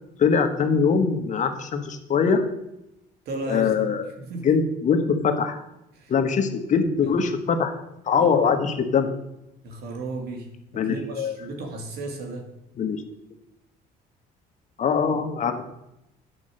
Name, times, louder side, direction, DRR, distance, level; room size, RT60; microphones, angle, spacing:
voice 1, 0.2-2.4 3.5-4.0 4.4-5.6 6.1-9.1 10.7-11.4 12.8-13.0 14.8-15.6, left 6 dB, 45° left, 6 dB, 1.3 m, -22 dB
voice 2, 3.3-3.7 4.2-4.6 5.9-6.1 8.2-8.7 9.6-10.5 10.7-12.5 15.1-15.2, right 2 dB, 70° right, 3 dB, 2.4 m, -34 dB
9.6 x 5.4 x 7.8 m, 0.87 s
cardioid pair, 110°, 17 cm